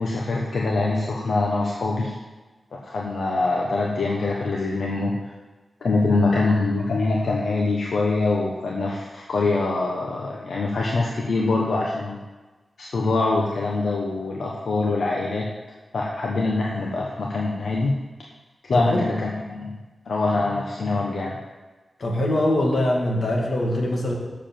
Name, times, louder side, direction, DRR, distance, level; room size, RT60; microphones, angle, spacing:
voice 1, 0.0-2.1 2.8-5.2 5.8-12.2 12.8-15.5 15.9-17.9 18.6-19.7 20.0-21.4, left 3 dB, 80° left, -2 dB, 1.1 m, -24 dB
voice 2, 18.7-19.1 22.0-24.1, left 1 dB, 60° left, -2 dB, 2.2 m, -23 dB
7.3 x 7.0 x 7.5 m, 1.2 s
wide cardioid pair, 120°, 0 cm